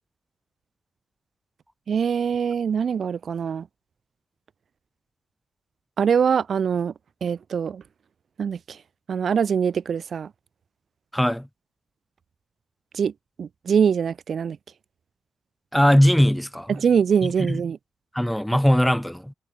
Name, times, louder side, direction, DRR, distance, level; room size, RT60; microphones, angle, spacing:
voice 1, 1.9-3.6 6.0-6.9 7.2-7.8 8.4-8.8 9.1-10.3 12.9-13.1 13.4-14.6 16.7-17.8, right 7 dB, 65° right, 0.3 m, -23 dB
voice 2, 11.1-11.5 15.7-16.8 17.2-17.6 18.1-19.3, equal, 5° left, 0.8 m, -20 dB
wide cardioid pair, 135°, 0 cm